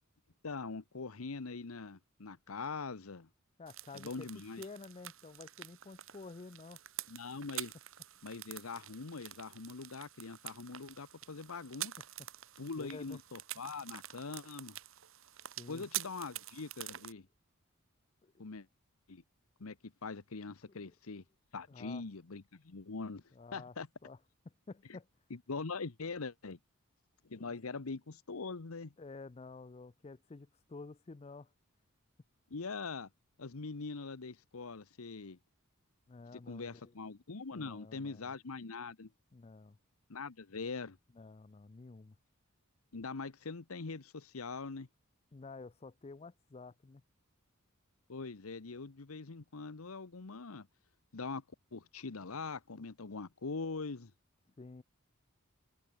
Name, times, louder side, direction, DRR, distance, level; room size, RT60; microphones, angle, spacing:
voice 1, 0.4-3.3 3.9-4.6 7.1-7.7 8.2-11.9 12.6-14.8 15.7-17.3 18.4-18.7 19.1-19.2 19.6-21.2 21.5-23.2 23.5-23.9 25.3-26.6 27.2-28.9 32.5-33.1 33.4-35.4 36.3-39.1 40.1-41.0 42.9-44.9 48.1-50.7 51.1-51.4 51.7-54.1, left 4 dB, 85° left, 1.0 m, -43 dB
voice 2, 3.6-4.3 4.6-6.8 12.8-13.2 15.6-15.8 18.2-18.3 20.7-20.8 21.7-22.0 23.3-23.7 24.0-24.2 24.7-25.1 27.3-27.5 29.0-31.5 36.1-36.9 37.5-38.3 39.3-39.8 41.1-42.2 45.3-47.0 54.6-54.8, left 3 dB, 30° left, 0.5 m, -50 dB
sound 1, 3.7-17.1, right 13 dB, 70° right, 2.0 m, -47 dB
open air
head